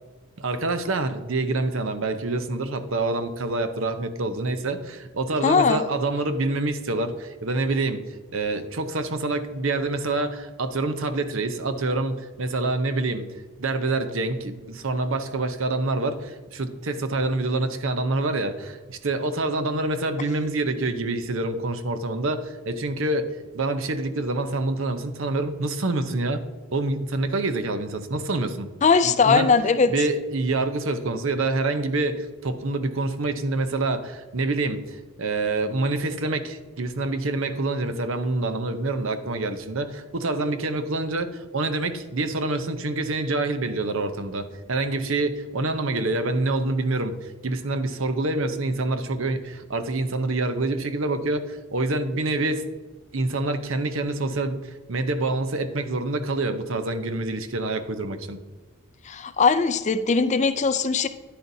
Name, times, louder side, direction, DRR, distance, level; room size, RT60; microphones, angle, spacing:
voice 1, 0.4-8.0 8.3-13.3 13.6-26.4 26.7-28.7 29.0-29.5 29.9-52.7 53.1-58.4, right 2 dB, 60° right, 9 dB, 0.7 m, -26 dB
voice 2, 5.4-5.8 28.8-29.9 59.1-61.1, left 5 dB, 30° left, 12 dB, 0.4 m, -20 dB
10.5 x 10.0 x 2.7 m, 1.3 s
head